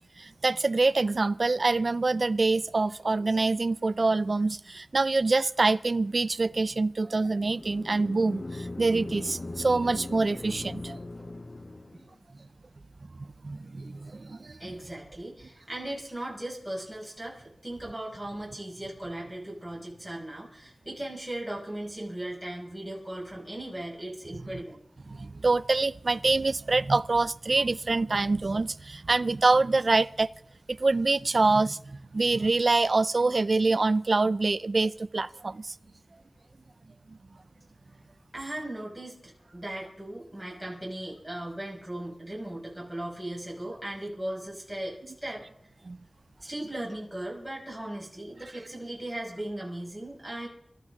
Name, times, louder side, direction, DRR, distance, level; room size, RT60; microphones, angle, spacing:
voice 1, 0.2-11.0 13.4-14.6 25.1-30.3 30.7-35.7 37.1-37.2 45.8-46.0, right 3 dB, 60° right, 0.5 m, -25 dB
sound 1, 7.2-12.1, left 2 dB, 50° left, 0.7 m, -39 dB
voice 2, 14.6-24.8 38.3-45.4 46.4-50.5, right 1 dB, 10° right, 6.3 m, -37 dB
28.0 x 14.0 x 3.7 m
wide cardioid pair, 60°, 0 cm